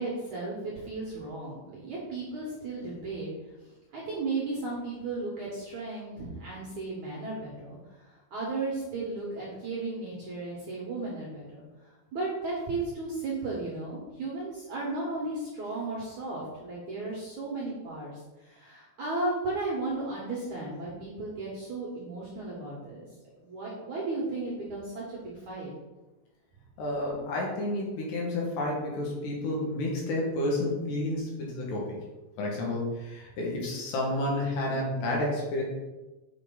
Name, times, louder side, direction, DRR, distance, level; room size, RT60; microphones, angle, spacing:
voice 1, 0.0-3.3 3.6-23.1 23.4-25.7, right 3 dB, 60° right, -5 dB, 2.1 m, -35 dB
voice 2, 26.8-32.0 32.4-35.6, left 1 dB, 70° left, -2 dB, 3.6 m, -30 dB
7.9 x 6.2 x 3.9 m, 1.1 s
omnidirectional pair, 5.2 m